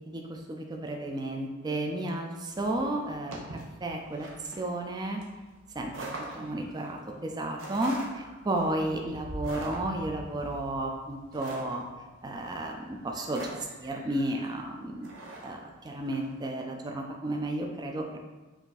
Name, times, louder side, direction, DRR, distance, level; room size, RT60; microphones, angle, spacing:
voice 1, 0.0-5.2 5.7-6.1 6.3-11.8 12.2-15.1 15.4-18.2, right 1 dB, 20° right, 2 dB, 0.4 m, -33 dB
sound 1, 2.5-16.3, right 1 dB, 85° right, 0.9 m, -44 dB
4.7 x 2.6 x 3.9 m, 1.2 s
head